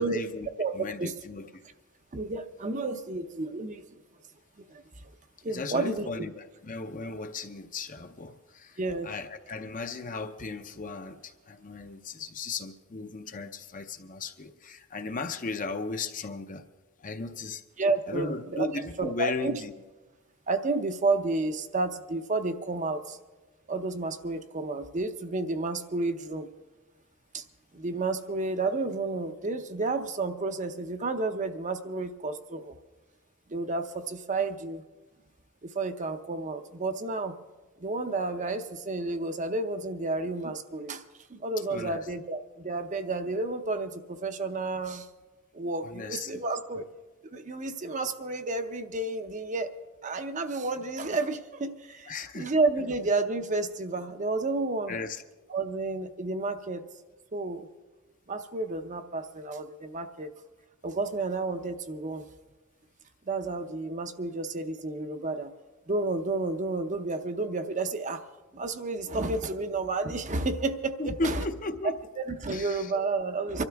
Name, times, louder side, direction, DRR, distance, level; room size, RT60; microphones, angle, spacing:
voice 1, 0.0-0.5 0.7-1.6 5.5-16.7 17.0-17.6 18.1-19.7 41.7-42.1 45.8-46.4 46.7-46.8 52.1-52.5 54.9-55.2 71.0-72.0 72.5-72.9, left 3 dB, 40° left, 0.7 m, -36 dB
voice 2, 0.6-1.1 2.1-3.8 4.7-4.8 5.4-6.1 8.8-9.1 17.8-18.7 19.0-19.5 20.5-23.2 23.7-26.5 27.3-27.4 27.7-32.8 33.5-34.8 35.6-37.3 37.8-41.0 41.3-45.1 45.5-46.9 47.3-49.7 50.0-55.0 55.5-56.8 57.3-57.7 58.3-60.3 60.8-62.3 63.3-65.5 65.9-68.2 68.5-71.4 72.2-73.6, right 3 dB, 35° right, 0.7 m, -31 dB
25.0 x 12.5 x 3.5 m
head